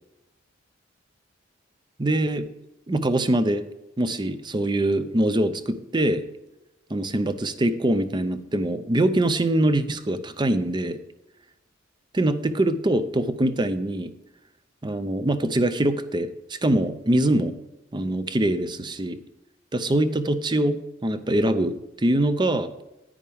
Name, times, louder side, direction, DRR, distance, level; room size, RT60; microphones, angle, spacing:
voice 1, 2.0-2.5 2.9-3.7 4.0-6.3 6.9-11.0 12.1-14.1 14.8-17.5 17.9-19.2 19.7-22.7, right 1 dB, 25° right, 12 dB, 0.5 m, -23 dB
10.0 x 9.8 x 3.5 m, 0.98 s
head